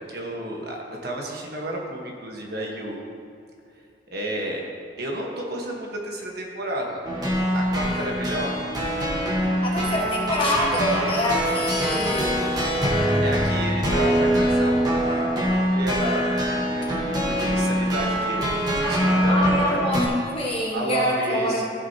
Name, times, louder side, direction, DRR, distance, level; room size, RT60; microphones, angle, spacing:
voice 1, 0.1-3.0 4.1-4.6 5.0-7.0 7.5-8.5 13.2-16.3 16.6-19.8 20.7-21.7, right 1 dB, 60° right, 0 dB, 1.3 m, -31 dB
sound 1, 7.0-20.1, equal, 20° right, 1.3 m, -23 dB
voice 2, 9.6-12.6 19.3-21.6, left 1 dB, 30° left, -3 dB, 1.5 m, -25 dB
14.5 x 6.0 x 2.9 m, 2.5 s
head